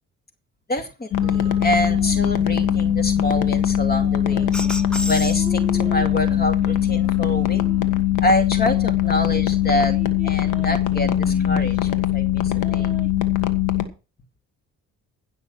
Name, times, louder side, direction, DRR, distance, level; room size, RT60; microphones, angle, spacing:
voice 1, 0.7-4.5 5.1-7.6 8.2-9.9 10.2-13.0, left 1 dB, 30° left, 8 dB, 2.4 m, -26 dB
sound 1, 1.1-13.9, left 11 dB, 90° left, 1.7 m, -21 dB
sound 2, 1.2-2.4 2.6-3.5 4.0-8.2 8.7-12.1 12.4-13.2, right 3 dB, 25° right, 6.8 m, -42 dB
sound 3, 4.5-6.3 6.9-8.0, right 1 dB, 5° left, 1.4 m, -33 dB
16.5 x 6.3 x 6.3 m, 0.32 s
cardioid pair, 90°, 30 cm